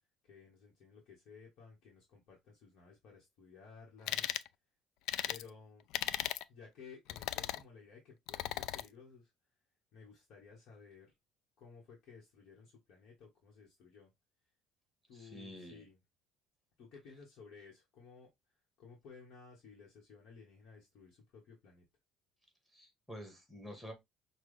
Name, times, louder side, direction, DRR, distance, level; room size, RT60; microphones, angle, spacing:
voice 1, 0.2-4.3 5.3-5.8 6.5-9.3 9.9-11.1 11.6-14.1 15.1-16.0 16.8-18.3 18.8-21.8, left 5 dB, 55° left, 1.4 m, -56 dB
sound 1, 4.1-4.5 5.1-5.4 5.9-6.4 7.1-7.6 8.3-8.9, left 13 dB, 70° left, 0.3 m, -36 dB
voice 2, 15.1-15.8 22.7-23.9, equal, 5° left, 1.6 m, -49 dB
5.9 x 2.4 x 3.3 m
cardioid pair, 140°, 0 cm